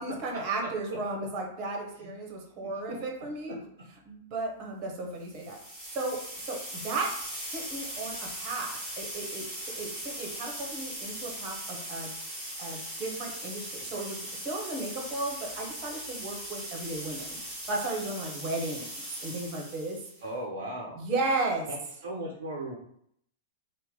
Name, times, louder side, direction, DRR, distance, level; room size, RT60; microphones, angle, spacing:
voice 1, 0.0-3.6 4.1-7.1 7.5-12.1 12.6-14.2 14.4-17.4 17.6-20.0 21.0-21.7, right 2 dB, 35° right, 0 dB, 0.9 m, -35 dB
sound 1, 5.3-20.2, equal, ahead, 1.3 m, -39 dB
voice 2, 20.2-21.0 21.7-22.8, right 1 dB, 60° right, -2 dB, 0.6 m, -37 dB
2.9 x 2.2 x 3.6 m, 0.69 s
figure-of-eight pair, 100°, 0 cm